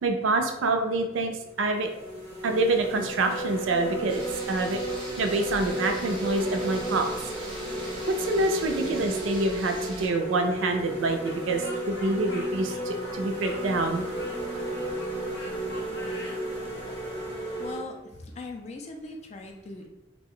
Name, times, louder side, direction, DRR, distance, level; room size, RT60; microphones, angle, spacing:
voice 1, 0.0-1.9 2.4-4.8 5.2-7.3 8.1-14.0, right 2 dB, 80° right, 5 dB, 0.4 m, -26 dB
sound 1, 0.8-1.0 1.6-17.8, right 1 dB, 10° left, 0.7 m, -33 dB
sound 2, 4.1-10.1, right 1 dB, 25° right, 0.5 m, -42 dB
Speech, 11.2-16.4, left 1 dB, 75° left, 0.7 m, -45 dB
voice 2, 17.6-19.9, left 3 dB, 35° left, 3 dB, 0.3 m, -40 dB
2.5 x 2.1 x 3.7 m, 0.99 s
head